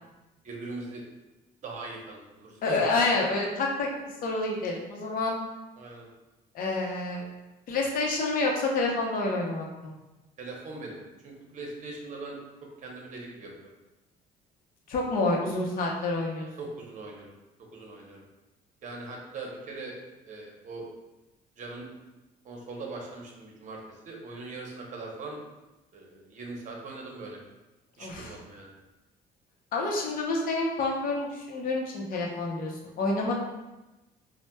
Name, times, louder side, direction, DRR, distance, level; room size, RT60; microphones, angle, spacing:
voice 1, 0.4-1.0 1.6-2.8 5.8-6.1 10.4-12.4 12.8-13.7 16.6-17.3 17.7-18.2 18.8-20.0 20.3-20.8 21.6-21.9 22.4-25.4 25.9-27.4 28.0-28.7, right 3 dB, 50° right, -1 dB, 0.8 m, -41 dB
voice 2, 2.6-3.9 4.2-5.4 6.5-7.2 7.7-9.9 14.9-16.5 28.0-28.3 29.7-32.7 33.0-33.3, left 2 dB, 55° left, -1 dB, 0.7 m, -28 dB
4.1 x 2.1 x 2.2 m, 1.0 s
cardioid pair, 110°, 17 cm